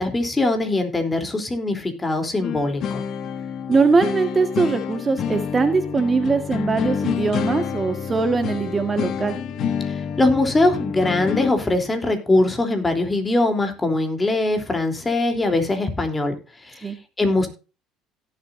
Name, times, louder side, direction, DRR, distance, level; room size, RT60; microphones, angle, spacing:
voice 1, 0.0-3.0 9.9-16.3 16.6-17.5, left 2 dB, 20° left, 6 dB, 3.3 m, -22 dB
sound 1, 2.4-11.5, left 7 dB, 55° left, 1.4 m, -28 dB
voice 2, 3.7-9.4 16.8-17.0, right 4 dB, 25° right, 8 dB, 1.6 m, -21 dB
17.0 x 7.8 x 2.7 m, 0.33 s
hypercardioid pair, 75°, 0 cm